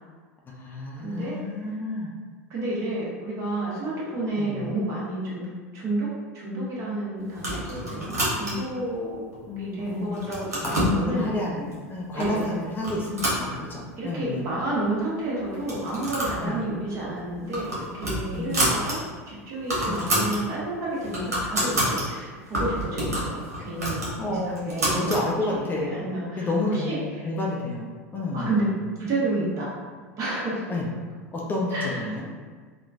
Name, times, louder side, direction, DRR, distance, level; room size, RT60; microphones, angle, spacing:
voice 1, 0.5-2.1 4.4-4.7 9.5-10.2 10.6-14.5 16.4-16.6 18.3-18.5 19.9-20.0 24.2-28.7 30.7-30.9 31.3-32.3, left 2 dB, 25° left, -3 dB, 0.5 m, -30 dB
voice 2, 1.0-1.4 1.7-1.8 2.5-5.5 5.7-6.1 6.3-9.2 9.6-11.4 12.1-12.4 14.0-26.5 26.7-27.3 28.3-28.6 29.0-29.7 30.2-30.6 31.7-32.3, right 2 dB, 40° right, -6 dB, 1.3 m, -30 dB
sound 1, 7.3-8.8 9.3-9.8 10.1-11.0 11.7-11.8 12.2-12.5 12.8-14.0 14.4-14.5 14.7-14.8 15.5-16.4 16.7-16.9 17.3-19.0 19.3-19.4 19.6-20.4 20.8-22.0 22.5-25.2, right 1 dB, 85° right, 1.0 m, -28 dB
3.6 x 2.3 x 2.5 m, 1.5 s
hypercardioid pair, 85°, 8 cm